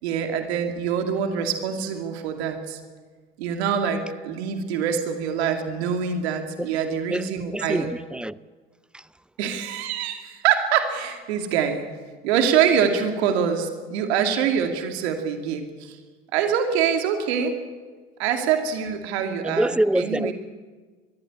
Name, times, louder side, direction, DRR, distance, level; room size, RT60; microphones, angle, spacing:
voice 1, 0.0-2.8 3.4-7.9 9.4-11.9 12.2-16.0 16.3-17.5 18.2-20.3, right 7 dB, 80° right, 2.4 m, -25 dB
voice 2, 7.1-8.3 8.9-9.0 19.4-20.3, right 1 dB, 5° right, 0.5 m, -25 dB
22.0 x 14.5 x 9.8 m
hypercardioid pair, 75°, 32 cm